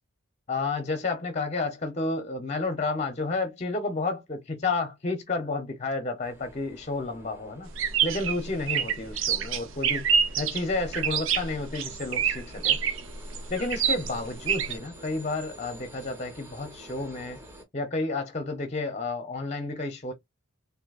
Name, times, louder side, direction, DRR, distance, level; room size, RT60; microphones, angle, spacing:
voice 1, 0.5-7.7 8.0-10.1 10.4-12.8 13.5-17.4 17.7-20.1, left 3 dB, 30° left, 0.6 m, -31 dB
sound 1, 6.2-17.6, right 1 dB, 10° right, 1.0 m, -49 dB
sound 2, 7.7-14.7, right 7 dB, 60° right, 0.6 m, -27 dB
3.8 x 2.6 x 2.3 m
head